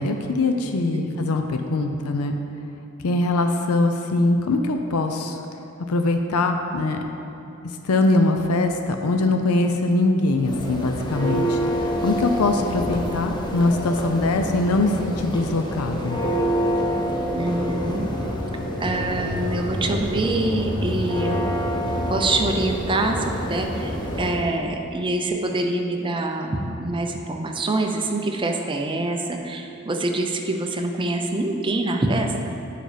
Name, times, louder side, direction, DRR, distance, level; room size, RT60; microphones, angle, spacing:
voice 1, 0.0-2.4 3.0-5.4 5.9-7.0 7.8-11.6 12.0-16.2, left 2 dB, 80° left, 5 dB, 0.5 m, -22 dB
Church bell, 10.3-24.5, equal, 20° left, 0.7 m, -27 dB
voice 2, 17.3-18.1 18.8-21.5 22.1-32.5, right 2 dB, 25° right, 3 dB, 0.6 m, -25 dB
7.7 x 5.1 x 5.0 m, 2.9 s
head